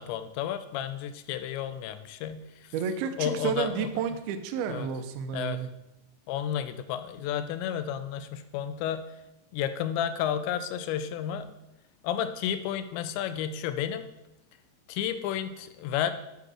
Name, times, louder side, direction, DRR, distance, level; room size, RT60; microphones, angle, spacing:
voice 1, 0.0-2.7 3.2-3.9 4.7-4.9 5.3-5.6 6.3-9.0 9.5-11.5 12.0-14.1 14.9-16.1, left 9 dB, 90° left, 11 dB, 2.9 m, -32 dB
voice 2, 2.7-5.7, right 7 dB, 80° right, 7 dB, 2.3 m, -31 dB
10.5 x 5.3 x 6.3 m, 0.91 s
omnidirectional pair, 5.1 m